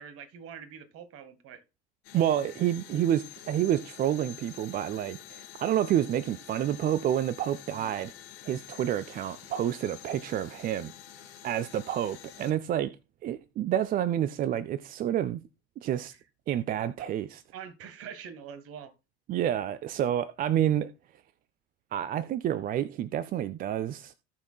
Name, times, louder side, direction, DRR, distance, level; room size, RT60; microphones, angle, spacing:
voice 1, 0.0-1.6 7.7-8.0 17.0-17.1 17.5-18.9, right 7 dB, 40° right, 1.3 m, -44 dB
sound 1, 2.0-12.5, left 11 dB, 65° left, 2.7 m, -48 dB
voice 2, 2.1-8.1 8.4-10.9 11.4-12.9 13.2-15.4 15.8-16.1 16.5-17.4 19.3-20.9 21.9-24.1, right 11 dB, 25° right, 0.4 m, -29 dB
17.5 x 5.9 x 2.3 m
figure-of-eight pair, 70°, 33 cm